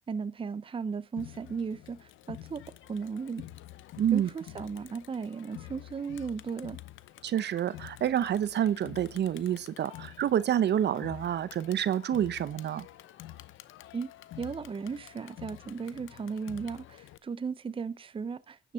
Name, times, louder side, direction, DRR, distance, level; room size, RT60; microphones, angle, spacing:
voice 1, 0.1-2.6 2.9-3.4 4.1-6.8 13.9-14.1 14.4-18.7, right 5 dB, 25° right, 0.6 m, -36 dB
Crowd, 1.2-17.2, left 14 dB, 85° left, 0.8 m, -48 dB
voice 2, 4.0-4.3 7.2-12.9, right 10 dB, 60° right, 0.8 m, -28 dB
11.0 x 10.0 x 5.6 m
cardioid pair, 90°, 20 cm